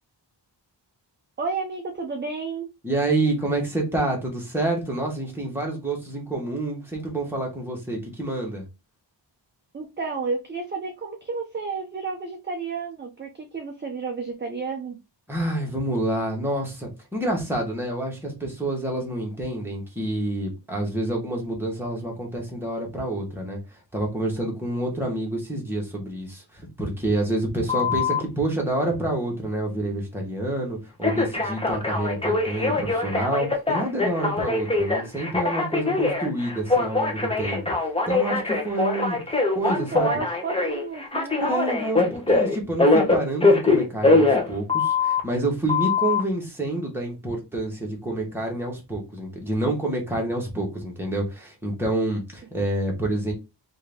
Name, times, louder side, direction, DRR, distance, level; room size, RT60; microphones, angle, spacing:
voice 1, 1.4-2.7 9.7-15.0 39.7-41.4, right 4 dB, 25° right, 0.5 m, -31 dB
voice 2, 2.8-8.6 15.3-23.6 23.9-37.6 38.1-39.2 39.5-40.2 41.4-53.3, right 1 dB, 5° right, 1.2 m, -28 dB
Telephone, 27.7-28.2 31.0-45.2 45.7-46.2, left 3 dB, 15° left, 0.7 m, -22 dB
3.6 x 2.6 x 3.5 m
wide cardioid pair, 165°, 45 cm